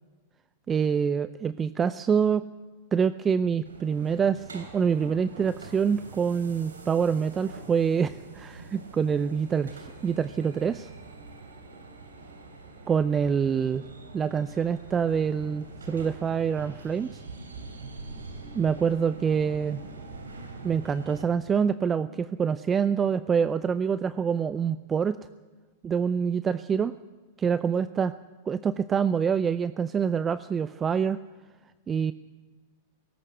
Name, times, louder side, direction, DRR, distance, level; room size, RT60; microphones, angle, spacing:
voice 1, 0.7-2.4 2.9-10.9 12.9-13.8 14.1-17.2 18.5-19.8 20.6-25.2 25.8-27.0 27.4-28.1 28.5-31.2 31.9-32.1, right 7 dB, 25° right, 15 dB, 0.5 m, -26 dB
sound 1, 3.6-21.2, right 3 dB, 90° right, 3.4 m, -44 dB
18.5 x 17.5 x 8.0 m, 1.4 s
hypercardioid pair, 105°, 0 cm